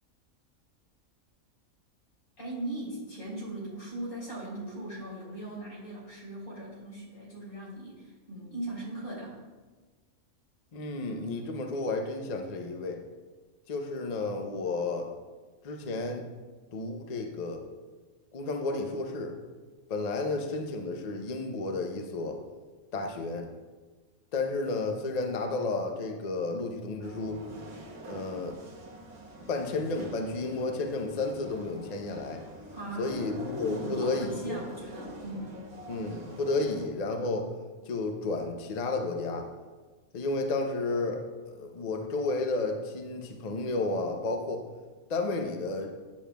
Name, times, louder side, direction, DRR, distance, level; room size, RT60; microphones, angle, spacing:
voice 1, 2.4-9.4 32.7-33.1 33.7-35.6, right 1 dB, 90° left, -6 dB, 3.1 m, -39 dB
voice 2, 10.7-13.0 13.7-15.1 15.6-16.3 16.7-17.6 18.3-19.4 19.9-22.4 22.9-23.5 24.3-27.4 28.0-28.6 29.5-32.4 33.0-34.6 35.9-37.5 37.9-39.5 40.1-44.6 45.1-46.0, left 3 dB, 45° left, 4 dB, 0.5 m, -32 dB
sound 1, 27.0-36.9, equal, 50° right, 1.4 m, -44 dB
9.5 x 6.9 x 2.3 m, 1.3 s
omnidirectional pair, 1.5 m